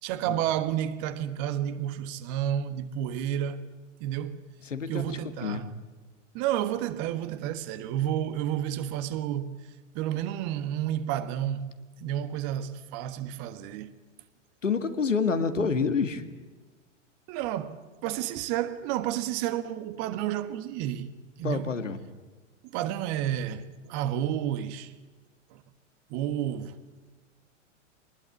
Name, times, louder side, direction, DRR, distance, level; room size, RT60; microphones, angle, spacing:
voice 1, 0.0-3.7 4.0-4.4 4.9-5.7 6.3-9.6 9.9-11.7 12.0-13.9 17.3-21.1 21.4-21.7 22.7-24.9 25.5-25.6 26.1-26.8, right 11 dB, 40° right, 1.6 m, -31 dB
voice 2, 4.7-5.7 14.6-16.2 21.4-22.0, left 5 dB, 80° left, 2.1 m, -28 dB
24.0 x 20.0 x 9.5 m
figure-of-eight pair, 100°, 37 cm